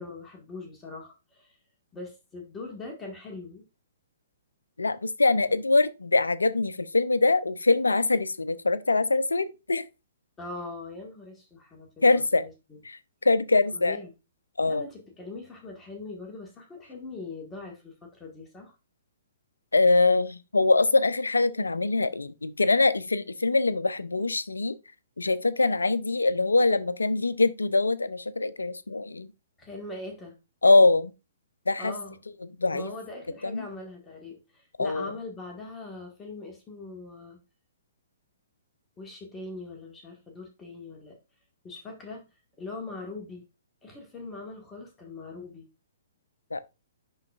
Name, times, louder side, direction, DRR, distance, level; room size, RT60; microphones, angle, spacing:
voice 1, 0.0-1.6 1.9-3.6 10.4-12.8 13.7-14.1 14.7-18.7 29.6-30.3 31.8-32.2 32.7-37.4 39.0-41.2 41.6-42.3 42.6-43.4 43.8-45.7, left 3 dB, 15° left, 1.6 m, -41 dB
voice 2, 4.8-9.8 12.0-12.4 12.8-13.0 13.2-14.0 14.6-14.9 19.7-24.7 25.2-29.3 30.6-31.1 31.7-31.9 32.6-32.9 33.4-33.6 34.8-35.1 46.5-46.6, left 3 dB, 75° left, 0.5 m, -23 dB
10.5 x 4.0 x 2.4 m
figure-of-eight pair, 120°, 0 cm